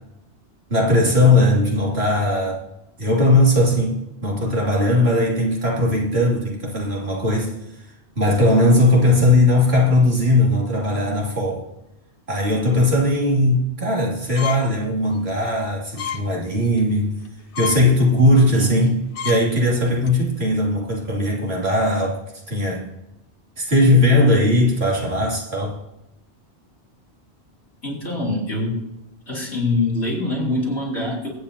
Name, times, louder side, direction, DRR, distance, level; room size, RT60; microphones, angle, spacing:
voice 1, 0.7-2.6 3.0-7.5 8.2-11.6 12.3-17.2 17.6-22.2 22.5-22.9 23.6-25.7, left 1 dB, 65° right, 3.0 m, -18 dB
sound 1, 14.4-14.7 15.2-15.3 16.0-16.2 16.6-16.9 17.3-17.4 17.5-17.8 18.3-18.5 18.9-19.0 19.1-19.4 19.9-20.1, left 7 dB, 55° left, 0.8 m, -29 dB
voice 2, 18.5-18.9 27.8-28.8 29.3-31.3, left 2 dB, 80° left, 4.0 m, -24 dB
23.0 x 8.9 x 2.8 m
omnidirectional pair, 1.2 m